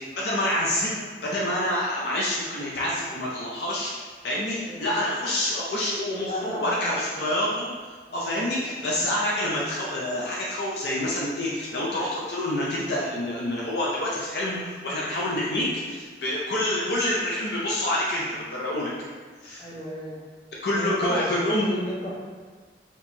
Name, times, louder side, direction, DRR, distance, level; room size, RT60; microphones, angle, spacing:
voice 1, 0.0-18.9 19.4-19.7 20.6-21.7, left 1 dB, 65° left, -5 dB, 0.5 m, -27 dB
voice 2, 4.6-4.9 6.3-7.4 8.1-8.9 19.6-20.2 20.7-22.2, equal, 30° left, -7 dB, 0.9 m, -34 dB
4.3 x 2.9 x 2.7 m, 1.5 s
head